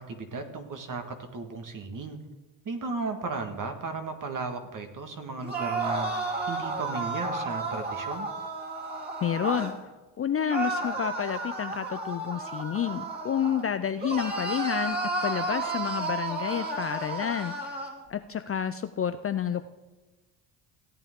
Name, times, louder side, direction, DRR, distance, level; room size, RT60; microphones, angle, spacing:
voice 1, 0.0-2.2 2.7-6.1 6.5-8.3, right 3 dB, 40° right, 6 dB, 1.8 m, -35 dB
sound 1, 5.4-9.8 10.5-13.7 14.0-18.0, right 2 dB, 20° right, 2.7 m, -32 dB
voice 2, 9.2-9.8 10.2-17.5 18.1-19.7, left 8 dB, 30° left, 10 dB, 0.5 m, -29 dB
16.0 x 8.9 x 3.7 m, 1.2 s
supercardioid pair, 75°, 49 cm